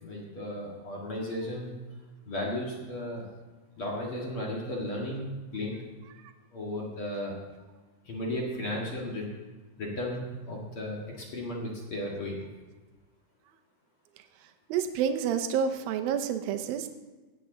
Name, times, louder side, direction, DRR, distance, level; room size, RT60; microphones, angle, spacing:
voice 1, 0.0-1.8 2.3-3.2 3.8-5.8 6.5-7.4 8.0-9.3 9.8-12.4, left 1 dB, 45° left, -3 dB, 2.0 m, -35 dB
voice 2, 14.7-16.9, right 7 dB, 75° right, 7 dB, 2.3 m, -28 dB
17.5 x 8.3 x 3.9 m, 1.2 s
omnidirectional pair, 4.8 m